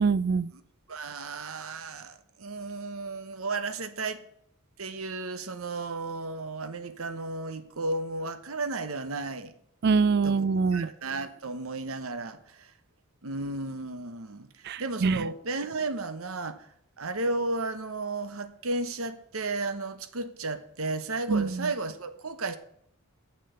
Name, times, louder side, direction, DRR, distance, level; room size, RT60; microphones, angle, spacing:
voice 1, 0.0-0.5 9.8-10.9 14.7-15.2 21.3-21.5, right 4 dB, 50° right, 0.4 m, -24 dB
voice 2, 0.9-4.2 4.8-9.5 10.2-12.7 13.2-16.7 17.0-22.6, right 3 dB, 70° right, 1.0 m, -34 dB
10.5 x 6.7 x 6.7 m
head